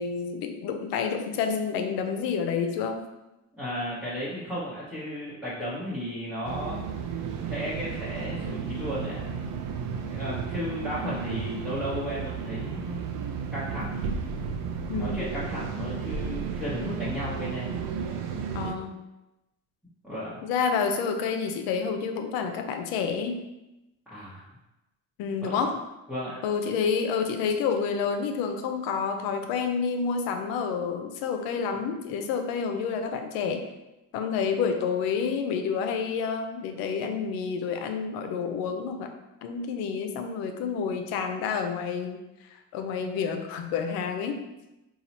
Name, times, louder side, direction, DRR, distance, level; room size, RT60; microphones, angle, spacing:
voice 1, 0.0-3.0 14.9-15.3 18.5-19.0 20.4-23.4 25.2-25.8 26.4-33.6 34.1-39.1 39.4-44.4, left 6 dB, 80° left, 6 dB, 0.6 m, -29 dB
voice 2, 3.5-6.8 7.4-9.4 10.0-13.1 13.5-14.1 15.0-17.7 20.0-20.4 24.1-24.5 25.4-25.6 26.1-26.4, equal, ahead, -12 dB, 1.0 m, -34 dB
sound 1, 6.4-18.7, right 6 dB, 65° right, 0.5 m, -33 dB
2.8 x 2.3 x 4.2 m, 0.97 s
cardioid pair, 105°, 35 cm